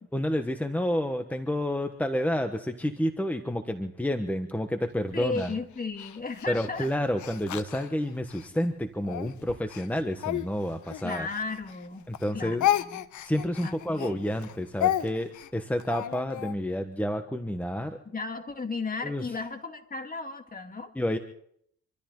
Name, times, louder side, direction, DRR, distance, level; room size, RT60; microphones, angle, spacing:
voice 1, 0.1-5.6 6.5-11.3 12.1-12.7 13.2-18.0 19.0-19.2 20.9-21.2, equal, 5° left, 7 dB, 1.3 m, -29 dB
voice 2, 5.1-6.9 11.0-12.1 12.3-13.0 13.6-14.3 18.0-20.9, left 4 dB, 30° left, 6 dB, 2.3 m, -35 dB
Speech, 5.3-8.5 9.0-11.9 12.1-16.5, left 12 dB, 75° left, 1.0 m, -32 dB
27.0 x 14.0 x 3.9 m, 0.65 s
cardioid pair, 90°, 30 cm